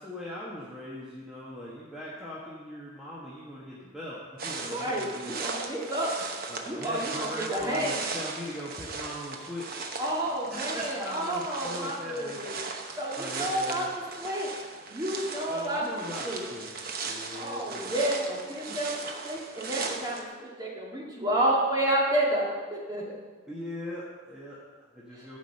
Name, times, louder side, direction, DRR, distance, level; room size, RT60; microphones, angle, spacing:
voice 1, 0.0-5.3 6.5-10.0 10.5-12.4 13.2-13.9 15.5-16.6 17.0-17.9 18.6-18.8 23.5-25.4, left 1 dB, 5° right, -8 dB, 1.3 m, -40 dB
sound 1, 4.4-20.2, right 4 dB, 45° right, 0.9 m, -38 dB
voice 2, 4.6-6.2 6.6-8.0 10.0-12.6 13.0-13.8 14.2-14.5 14.9-15.8 16.2-16.4 17.3-23.1 25.1-25.3, right 1 dB, 20° right, -4 dB, 2.0 m, -30 dB
13.0 x 5.2 x 6.5 m, 1.5 s
head